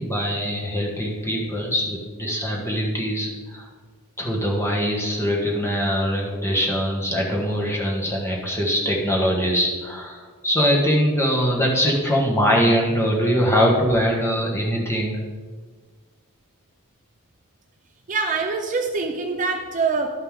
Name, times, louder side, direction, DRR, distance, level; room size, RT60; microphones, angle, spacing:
voice 1, 0.0-3.7 4.2-15.2, equal, 10° left, -2 dB, 1.4 m, -22 dB
voice 2, 18.1-20.1, right 4 dB, 35° right, 4 dB, 0.5 m, -24 dB
11.5 x 5.4 x 3.7 m, 1.5 s
head